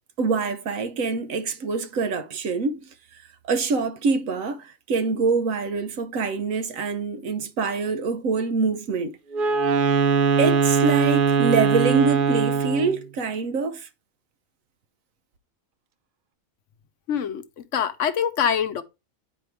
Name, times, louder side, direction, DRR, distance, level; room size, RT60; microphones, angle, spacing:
voice 1, 0.2-2.8 3.4-9.2 10.4-13.9, right 4 dB, 80° right, 1.2 m, -25 dB
Wind instrument woodwind instrument, 9.3-13.0, right 5 dB, 55° right, 0.6 m, -21 dB
voice 2, 17.1-18.8, left 8 dB, 70° left, 1.1 m, -25 dB
9.8 x 4.6 x 3.4 m
omnidirectional pair, 1.4 m